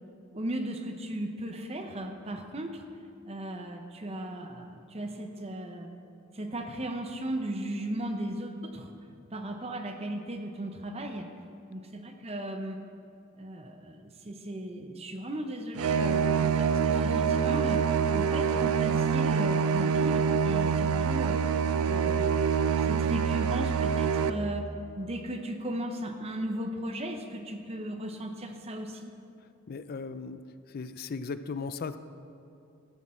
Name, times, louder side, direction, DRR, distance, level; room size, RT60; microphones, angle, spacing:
voice 1, 0.3-2.8 3.2-5.9 6.3-8.9 9.3-11.3 11.7-12.8 13.4-17.8 18.1-21.4 21.8-24.7 25.0-29.1, right 1 dB, 30° right, 5 dB, 0.7 m, -36 dB
sound 1, 15.8-24.3, right 6 dB, 80° right, 0.4 m, -26 dB
voice 2, 29.7-30.4 30.7-32.0, left 4 dB, 45° left, 12 dB, 0.4 m, -36 dB
13.0 x 9.9 x 4.4 m, 2.5 s
head